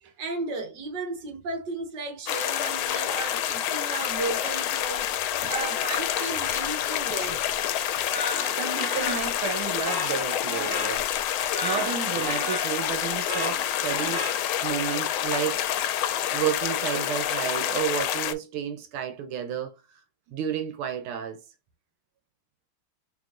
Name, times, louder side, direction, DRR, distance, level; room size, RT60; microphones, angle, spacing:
voice 1, 0.2-5.1 5.5-7.4, right 3 dB, 60° right, 1.7 m, -34 dB
sound 1, 2.3-18.3, left 11 dB, 80° left, 1.4 m, -28 dB
sound 2, 8.1-14.8, left 1 dB, 15° left, 1.0 m, -35 dB
voice 2, 8.2-14.2 14.6-15.6 16.3-19.8 20.3-21.4, right 9 dB, 85° right, 1.6 m, -31 dB
5.0 x 3.3 x 2.5 m
omnidirectional pair, 2.3 m